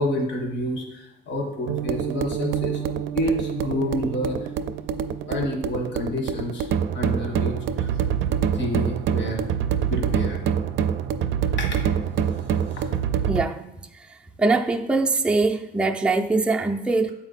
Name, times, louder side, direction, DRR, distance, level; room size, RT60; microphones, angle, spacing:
voice 1, 0.0-2.8 3.1-4.5 5.3-6.7 6.9-8.0 8.3-9.4 9.9-10.4 11.6-11.8 12.3-12.4 12.7-12.9, left 1 dB, 65° left, 1.4 m, -29 dB
sound 1, 1.7-13.4, right 8 dB, 75° right, 0.4 m, -26 dB
voice 2, 13.3-13.6 14.1-17.1, right 3 dB, 5° right, 0.4 m, -22 dB
7.4 x 4.4 x 4.1 m
cardioid pair, 90°, 20 cm